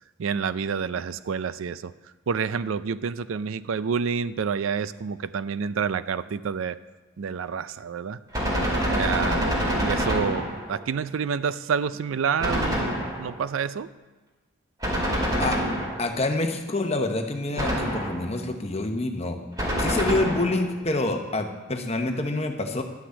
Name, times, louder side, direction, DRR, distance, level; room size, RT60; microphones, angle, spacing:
voice 1, 0.2-1.9 2.3-6.8 7.2-8.2 8.9-13.9, right 6 dB, 75° right, 15 dB, 0.4 m, -28 dB
Gunshot gunfire, 8.3-10.8 12.4-13.4 14.8-16.2 17.6-18.4 19.6-20.7, equal, 20° right, 2.4 m, -26 dB
voice 2, 16.0-19.4 19.8-22.8, left 2 dB, 30° left, 5 dB, 1.0 m, -27 dB
11.5 x 6.1 x 8.0 m, 1.2 s
head